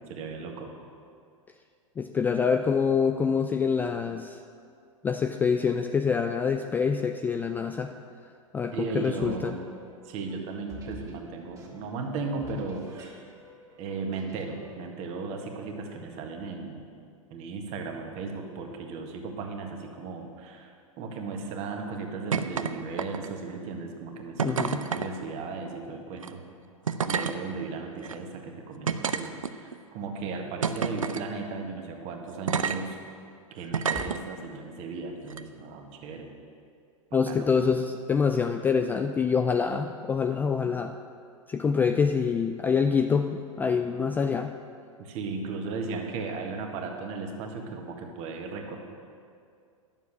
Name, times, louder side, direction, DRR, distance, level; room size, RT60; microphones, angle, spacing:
voice 1, 0.1-0.7 8.7-9.6 10.1-13.2 13.8-16.8 17.3-20.7 21.0-26.4 27.0-33.0 33.5-36.3 37.3-37.5 45.0-48.8, right 4 dB, 35° right, 2 dB, 1.6 m, -36 dB
voice 2, 2.0-4.4 5.0-7.9 8.5-9.5 24.4-24.8 37.1-40.9 41.5-44.5, left 6 dB, 10° left, 6 dB, 0.3 m, -26 dB
sound 1, 8.7-14.8, equal, 20° right, 2.1 m, -50 dB
sound 2, 22.3-22.7 23.0-23.4 24.4-25.1 26.1-26.3 26.9-27.4 28.0-28.1 28.9-29.7 30.6-31.2 32.5-32.8 33.7-34.2 35.3-35.4, right 6 dB, 75° right, 0.6 m, -28 dB
11.0 x 7.3 x 7.5 m, 2.3 s
figure-of-eight pair, 95°, 17 cm